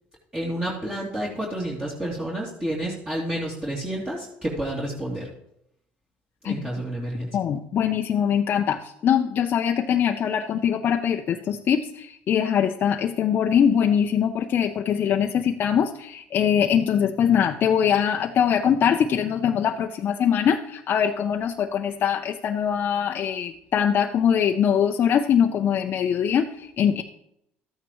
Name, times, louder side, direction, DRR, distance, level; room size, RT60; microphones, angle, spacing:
voice 1, 0.3-5.3 6.4-7.4, right 1 dB, 20° right, -5 dB, 2.7 m, -30 dB
voice 2, 7.3-27.0, left 8 dB, 50° left, 4 dB, 0.6 m, -22 dB
13.5 x 9.2 x 3.1 m, 0.77 s
supercardioid pair, 95°, 5 cm